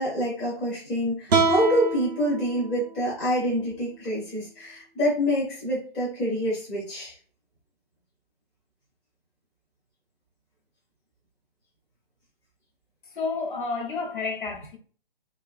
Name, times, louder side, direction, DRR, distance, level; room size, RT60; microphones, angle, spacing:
voice 1, 0.0-7.1, equal, 10° left, 0.5 m, -26 dB
sound 1, 1.3-4.5, right 4 dB, 45° right, 0.5 m, -28 dB
voice 2, 13.2-14.8, left 4 dB, 60° left, 0.7 m, -30 dB
2.7 x 2.3 x 2.3 m
hypercardioid pair, 150°, 29 cm